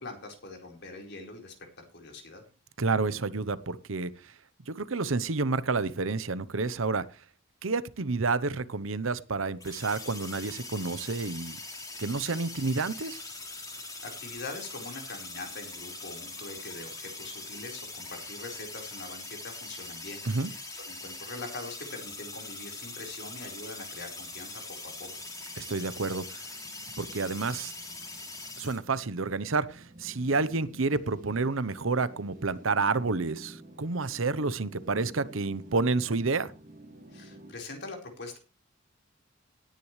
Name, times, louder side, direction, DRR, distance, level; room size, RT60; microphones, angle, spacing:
voice 1, 0.0-2.4 13.6-25.2 37.1-38.4, left 2 dB, 60° left, 2 dB, 4.5 m, -43 dB
voice 2, 2.8-4.3 4.7-7.1 7.6-11.6 12.0-13.2 20.2-20.5 25.6-26.5 27.0-27.7 28.6-36.5, right 3 dB, 80° right, 16 dB, 0.9 m, -29 dB
sound 1, 9.6-28.8, left 2 dB, 20° left, 3.4 m, -42 dB
sound 2, 24.3-37.5, right 1 dB, 40° right, 2.2 m, -51 dB
18.0 x 10.5 x 3.2 m, 0.33 s
head